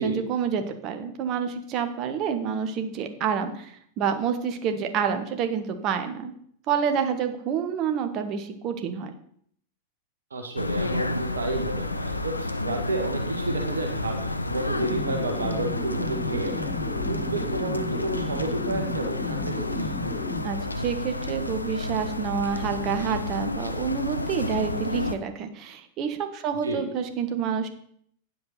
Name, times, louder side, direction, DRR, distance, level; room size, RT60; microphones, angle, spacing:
voice 1, 0.0-6.3 6.7-9.1 20.4-27.7, right 7 dB, 35° right, 7 dB, 1.4 m, -28 dB
voice 2, 10.3-16.7 17.1-20.0 26.6-26.8, right 2 dB, 70° right, 6 dB, 1.6 m, -31 dB
sound 1, 10.6-25.2, left 2 dB, 85° left, 0.6 m, -31 dB
sound 2, 14.7-20.4, left 3 dB, 45° left, 2.8 m, -33 dB
9.9 x 5.4 x 5.9 m, 0.65 s
figure-of-eight pair, 90°, 0 cm